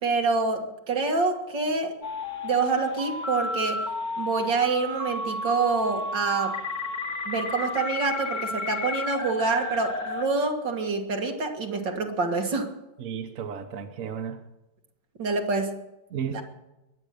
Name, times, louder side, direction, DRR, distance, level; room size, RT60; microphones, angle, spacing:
voice 1, 0.0-2.0 2.4-3.9 4.2-6.6 7.3-12.7 15.2-15.8 16.3-16.4, right 4 dB, 85° right, 3 dB, 2.7 m, -26 dB
sound 1, 2.0-10.2, left 2 dB, 55° left, 2.6 m, -32 dB
voice 2, 13.0-14.4 16.1-16.4, right 7 dB, 50° right, 6 dB, 1.4 m, -33 dB
22.0 x 9.2 x 6.7 m, 0.97 s
omnidirectional pair, 1.9 m